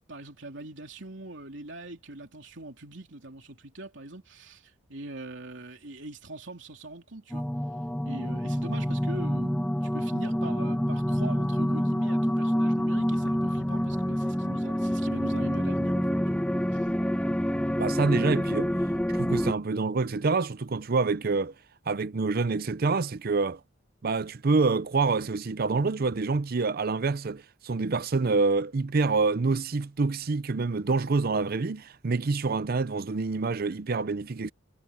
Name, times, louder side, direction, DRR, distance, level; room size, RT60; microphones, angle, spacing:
voice 1, 0.1-7.4 8.0-16.2 16.7-16.8, right 2 dB, 65° right, 3.5 m, -42 dB
sound 1, 7.3-19.5, equal, 5° left, 1.6 m, -27 dB
voice 2, 17.8-18.7 19.1-21.5 21.9-23.6 24.0-34.5, right 4 dB, 50° right, 0.6 m, -27 dB
head